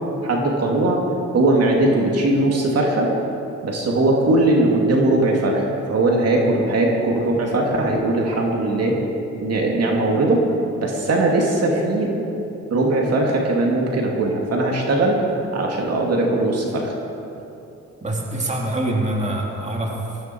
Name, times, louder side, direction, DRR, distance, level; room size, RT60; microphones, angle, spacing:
voice 1, 0.2-1.0 1.3-3.1 3.6-9.0 9.4-10.4 10.8-12.1 12.7-15.2 15.5-16.9, right 2 dB, 55° right, -1 dB, 2.7 m, -19 dB
voice 2, 18.0-20.2, right 1 dB, 25° right, -1 dB, 2.9 m, -25 dB
20.0 x 14.0 x 4.6 m, 2.9 s
cardioid pair, 90°, 30 cm